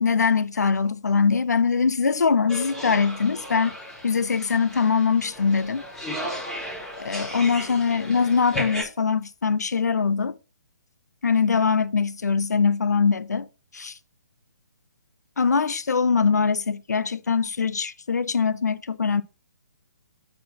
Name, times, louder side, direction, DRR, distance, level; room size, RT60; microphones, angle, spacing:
voice 1, 0.0-3.7 4.0-5.8 7.0-10.4 11.2-13.5 13.7-14.0 15.4-19.2, left 5 dB, 65° left, 0.6 m, -22 dB
sound 1, 2.5-8.8, equal, 5° left, 3.3 m, -35 dB
9.1 x 4.2 x 4.5 m
figure-of-eight pair, 135°, 10 cm